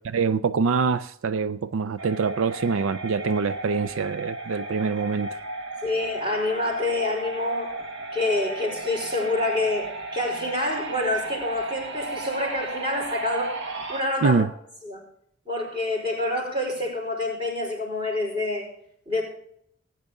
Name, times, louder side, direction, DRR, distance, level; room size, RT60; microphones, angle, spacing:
voice 1, 0.0-5.4 14.2-14.5, right 5 dB, 75° right, 0.4 m, -25 dB
sound 1, 2.0-14.0, right 2 dB, 60° right, 1.7 m, -35 dB
voice 2, 5.8-7.7 8.1-13.6 13.9-14.4 14.8-15.0 15.5-18.7 19.1-19.2, left 2 dB, 25° right, 4.8 m, -27 dB
19.0 x 9.4 x 3.7 m
head